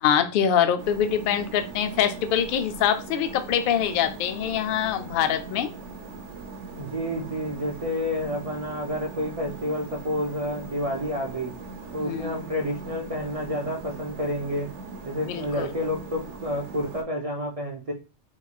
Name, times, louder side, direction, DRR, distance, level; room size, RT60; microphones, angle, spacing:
voice 1, 0.0-5.7 12.0-12.3 15.2-15.7, left 9 dB, 65° left, 0.5 m, -24 dB
sound 1, 0.8-17.0, right 3 dB, 70° right, 1.0 m, -40 dB
voice 2, 6.7-11.5 11.9-14.7 15.0-17.9, equal, 40° right, 0.5 m, -29 dB
3.6 x 3.1 x 2.3 m
omnidirectional pair, 1.3 m